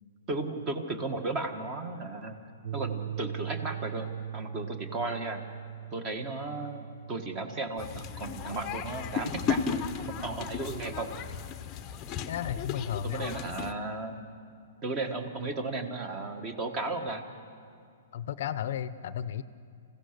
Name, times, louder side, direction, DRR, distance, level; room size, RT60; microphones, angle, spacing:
voice 1, 0.3-2.4 2.7-5.4 5.9-11.1 13.0-14.1 14.8-17.3, right 3 dB, 25° right, 8 dB, 1.4 m, -35 dB
sound 1, 2.6-9.7, right 9 dB, 50° right, 0.6 m, -41 dB
sound 2, 7.8-13.7, left 7 dB, 20° left, 0.8 m, -35 dB
voice 2, 12.3-13.3 18.1-19.4, left 10 dB, 55° left, 14 dB, 0.6 m, -33 dB
27.0 x 16.0 x 6.7 m, 2.4 s
hypercardioid pair, 165°, 0 cm